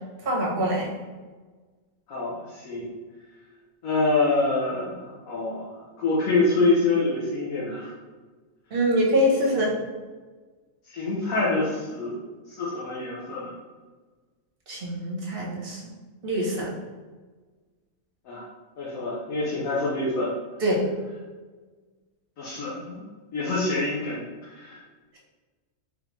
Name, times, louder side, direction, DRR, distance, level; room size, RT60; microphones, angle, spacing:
voice 1, 0.2-0.9 8.7-9.7 14.7-15.8 16.2-16.7 20.6-20.9, equal, 45° right, -4 dB, 1.2 m, -24 dB
voice 2, 2.1-2.9 3.8-7.9 10.9-12.2 12.5-13.5 18.2-18.5 18.8-20.3 22.4-23.0 23.3-24.8, left 3 dB, 80° left, -6 dB, 1.3 m, -26 dB
3.7 x 3.3 x 3.1 m, 1.4 s
omnidirectional pair, 1.4 m